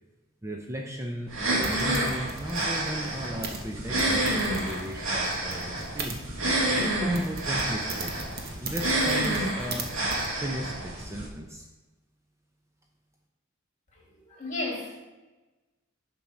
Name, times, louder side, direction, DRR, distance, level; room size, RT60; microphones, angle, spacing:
voice 1, 0.4-6.2 6.7-8.2 8.6-9.9 10.4-11.7, equal, 15° right, 2 dB, 0.6 m, -36 dB
sound 1, 1.3-11.3, right 1 dB, 75° right, 1.7 m, -29 dB
sound 2, 1.6-6.2 6.8-6.9 7.1-9.8 10.1-10.3, right 3 dB, 50° right, 1.0 m, -39 dB
voice 2, 14.3-15.1, left 2 dB, 35° left, -2 dB, 2.6 m, -33 dB
7.0 x 6.1 x 5.1 m, 1.1 s
head